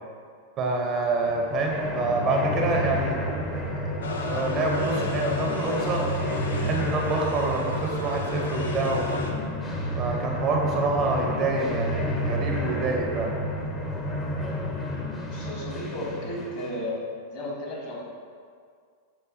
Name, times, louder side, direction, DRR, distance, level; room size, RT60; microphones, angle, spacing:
voice 1, 0.6-3.2 3.5-4.0 4.3-6.0 6.5-9.1 10.0-13.3, right 3 dB, 40° right, 0 dB, 0.5 m, -27 dB
sound 1, 1.1-16.9, left 1 dB, 20° left, 0.5 m, -30 dB
sound 2, 4.0-9.3, left 2 dB, 80° left, 0.3 m, -34 dB
voice 2, 15.3-16.9 17.3-18.0, left 1 dB, 55° left, -4 dB, 1.0 m, -34 dB
5.1 x 2.1 x 2.5 m, 2.1 s
hypercardioid pair, 105°, 0 cm